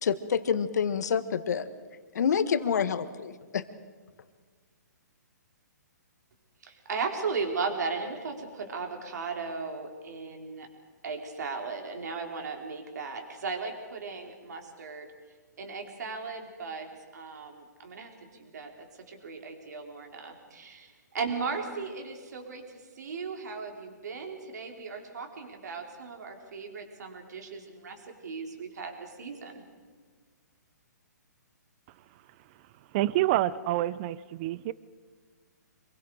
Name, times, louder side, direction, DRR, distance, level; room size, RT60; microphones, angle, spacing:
voice 1, 0.0-1.7 2.1-3.6, left 7 dB, 65° left, 12 dB, 1.6 m, -27 dB
voice 2, 6.6-10.7 11.0-15.1 15.6-16.9 17.1-18.7 19.1-22.6 23.0-29.6, right 4 dB, 65° right, 3 dB, 4.6 m, -36 dB
voice 3, 32.9-34.7, right 15 dB, 35° right, 19 dB, 0.6 m, -27 dB
27.0 x 22.5 x 5.1 m, 1.5 s
hypercardioid pair, 145°, 10 cm